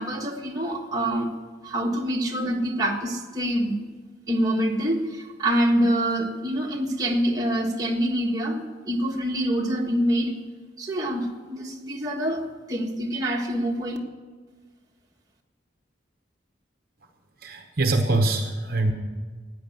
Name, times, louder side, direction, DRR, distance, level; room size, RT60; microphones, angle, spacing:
voice 1, 0.0-1.3 1.6-3.8 4.3-10.4 10.8-14.0, right 1 dB, 20° right, -1 dB, 1.6 m, -26 dB
voice 2, 17.4-18.9, right 2 dB, 50° right, 5 dB, 0.9 m, -23 dB
14.0 x 9.4 x 7.7 m, 1.5 s
head